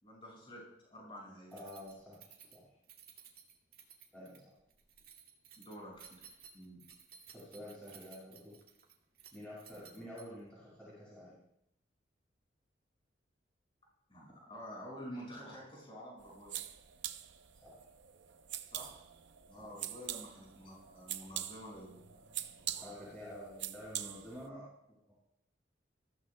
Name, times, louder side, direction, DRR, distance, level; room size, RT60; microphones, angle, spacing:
voice 1, 0.0-1.6 5.6-6.2 6.5-6.8 14.1-16.6 18.7-19.0 19.5-22.8, equal, 30° left, -3 dB, 5.6 m, -49 dB
voice 2, 1.5-2.7 4.1-4.5 7.3-8.6 9.3-11.4 17.6-17.8 19.6-19.7 22.8-25.1, equal, 5° left, -9 dB, 6.0 m, -49 dB
Keys jangling, 1.5-10.5, right 7 dB, 50° right, 2.0 m, -57 dB
sound 1, 16.2-24.5, right 12 dB, 75° right, 0.6 m, -44 dB
21.5 x 15.0 x 2.2 m, 0.79 s
head